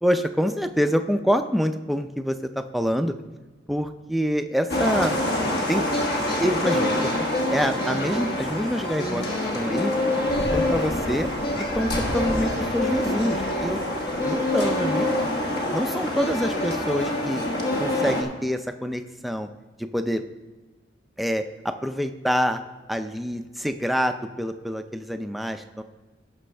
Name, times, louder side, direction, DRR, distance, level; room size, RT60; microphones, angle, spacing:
voice 1, 0.0-3.1 3.7-5.1 5.7-5.9 6.4-7.1 7.5-9.2 9.5-9.9 10.5-11.3 11.8-13.8 14.2-15.1 15.7-17.4 17.8-19.5 19.8-20.2 21.2-22.6 22.9-25.8, equal, ahead, 7 dB, 0.4 m, -26 dB
sound 1, 4.7-18.2, left 1 dB, 55° left, 1.3 m, -25 dB
16.5 x 6.2 x 3.3 m, 1.3 s
head